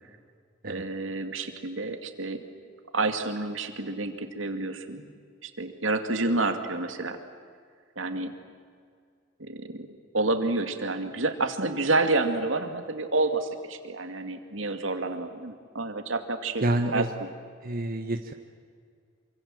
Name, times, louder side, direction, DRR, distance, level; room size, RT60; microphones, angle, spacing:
voice 1, 0.6-2.4 2.9-5.1 5.4-7.2 8.0-8.3 9.4-9.9 10.1-16.6 16.9-17.3, right 2 dB, 75° right, 7 dB, 2.5 m, -29 dB
voice 2, 16.6-17.1 17.6-18.3, right 1 dB, 50° right, 5 dB, 1.3 m, -28 dB
27.5 x 25.5 x 7.8 m, 2.1 s
head